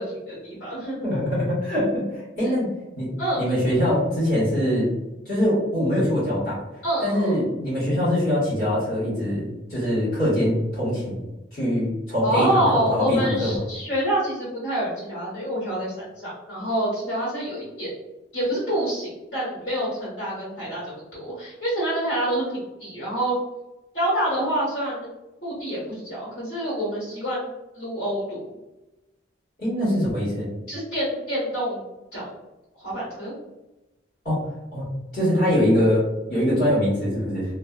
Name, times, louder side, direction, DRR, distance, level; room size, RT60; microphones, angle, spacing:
voice 1, 0.0-1.1 2.4-2.5 3.2-3.4 6.8-7.4 12.2-17.9 18.3-23.3 23.9-25.1 25.4-27.5 27.7-28.4 30.7-31.8 32.1-32.2 32.8-33.3, right 1 dB, 75° left, -10 dB, 1.4 m, -27 dB
voice 2, 1.0-2.0 2.4-2.7 2.9-4.9 5.3-6.6 7.0-11.2 11.5-13.6 29.6-30.4 34.2-34.4 34.7-37.5, equal, 55° left, -10 dB, 1.4 m, -23 dB
2.5 x 2.1 x 2.3 m, 1.0 s
head